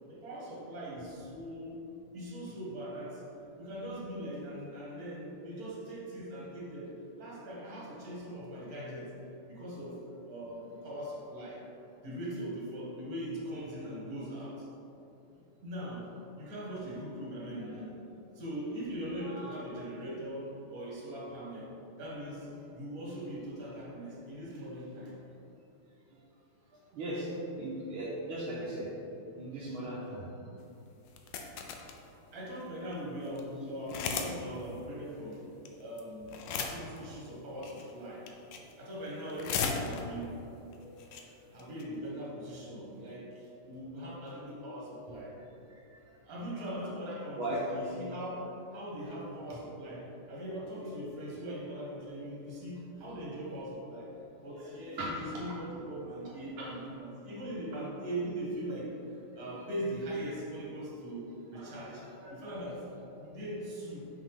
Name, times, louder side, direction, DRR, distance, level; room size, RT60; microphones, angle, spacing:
voice 1, 0.1-1.8 2.1-3.2 3.6-9.1 9.5-10.0 10.3-11.6 12.0-14.7 15.3-16.1 16.4-18.0 18.3-21.7 22.0-25.2 32.3-35.5 35.8-38.3 38.8-40.4 41.5-45.4 46.2-54.1 54.4-58.9 59.4-62.8 63.2-64.1, equal, 45° right, -6 dB, 1.9 m, -40 dB
voice 2, 19.2-19.6 26.9-27.3 27.6-28.9 29.4-30.3 32.1-32.2 40.8-41.3 46.6-46.9 47.4-47.9 54.5-54.7 55.0-55.2 56.6-56.7 61.5-62.4, right 1 dB, 75° right, -5 dB, 1.6 m, -38 dB
sound 1, 31.1-32.0 32.6-32.7 32.9-33.0 33.3-33.4 33.9-34.3 34.6-34.7 35.7-36.0 36.3-37.0 37.6-37.9 38.3-38.7 39.1-40.2 40.7-40.8 41.0-41.2 41.6-41.8, left 6 dB, 70° left, 1.1 m, -35 dB
5.8 x 5.4 x 3.6 m, 2.9 s
omnidirectional pair, 2.4 m